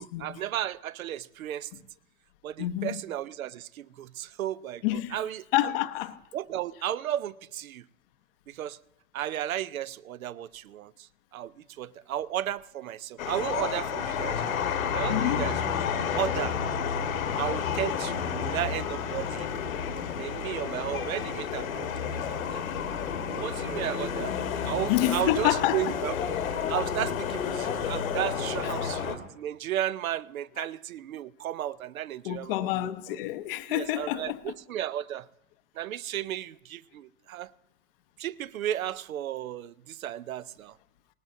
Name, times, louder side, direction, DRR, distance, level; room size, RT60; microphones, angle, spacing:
voice 1, 0.0-1.7 2.4-5.8 6.3-7.9 8.5-8.8 9.1-11.1 11.3-14.5 14.9-15.8 16.1-16.6 17.4-19.5 20.2-22.6 23.3-24.3 24.6-26.4 26.7-32.9 33.7-35.3 35.8-37.5 38.2-40.8, right 12 dB, 70° right, 0.6 m, -34 dB
voice 2, 2.6-3.0 4.8-5.2 5.5-6.2 15.1-15.5 24.9-25.9 30.6-30.7 32.2-34.5, left 15 dB, 40° left, 0.7 m, -28 dB
sound 1, 13.2-29.2, left 7 dB, 70° left, 1.4 m, -31 dB
19.5 x 18.0 x 2.6 m
figure-of-eight pair, 105°, 43 cm